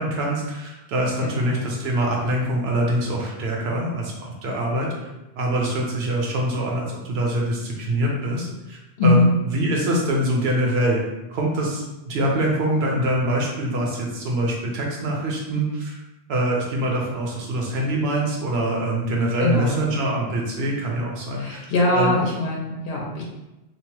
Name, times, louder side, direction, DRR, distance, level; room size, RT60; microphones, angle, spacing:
voice 1, 0.0-5.1 5.4-16.0 16.3-21.7 21.9-22.2, right 1 dB, 75° right, -1 dB, 0.9 m, -24 dB
voice 2, 1.2-1.7 9.0-9.3 19.4-19.9 21.3-23.2, left 2 dB, 70° left, -2 dB, 0.8 m, -21 dB
2.8 x 2.0 x 2.9 m, 0.99 s
omnidirectional pair, 1.1 m